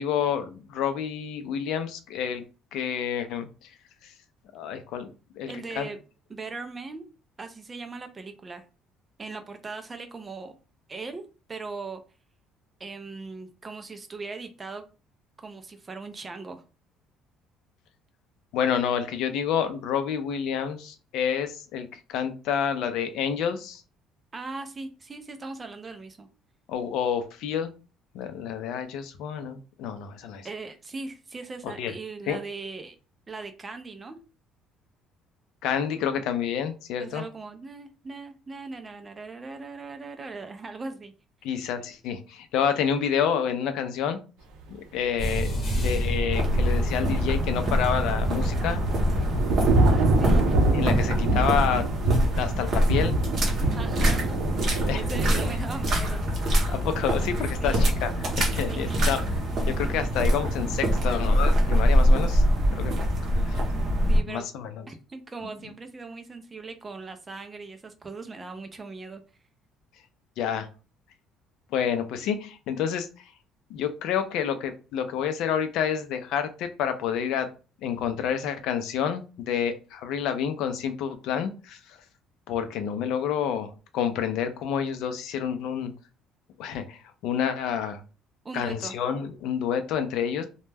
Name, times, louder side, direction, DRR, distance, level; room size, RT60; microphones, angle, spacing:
voice 1, 0.0-2.4 2.7-3.5 4.0-4.1 4.5-5.9 18.5-23.8 26.7-27.7 28.1-30.5 31.6-31.9 32.3-32.4 35.6-37.2 41.4-44.2 44.7-48.8 49.7-50.0 50.7-51.9 52.3-53.1 54.9-55.0 55.5-55.6 56.7-58.1 58.4-59.2 59.7-62.4 62.7-63.0 63.4-63.6 64.3-64.8 70.4-70.7 71.7-73.3 73.7-77.5 77.8-82.0 82.5-85.9 86.6-88.0 88.5-90.5, left 8 dB, 65° left, 9 dB, 0.4 m, -29 dB
voice 2, 5.5-6.0 6.3-7.0 7.4-8.6 9.2-10.5 10.9-11.2 11.5-12.0 12.8-14.8 15.4-16.6 24.3-26.3 30.4-33.0 33.3-34.2 37.0-41.1 49.7-50.5 53.8-56.2 57.6-58.0 58.7-59.2 59.8-59.9 64.1-64.5 64.9-69.2 88.4-89.0, right 3 dB, 15° right, 7 dB, 0.3 m, -39 dB
sound 1, 45.2-50.5, equal, 35° left, 0.8 m, -28 dB
sound 2, 46.3-64.2, equal, 35° right, 0.7 m, -25 dB
Thunder / Rain, 48.2-55.5, right 2 dB, 85° right, 0.5 m, -25 dB
2.1 x 2.1 x 3.2 m, 0.33 s
cardioid pair, 175°, 0 cm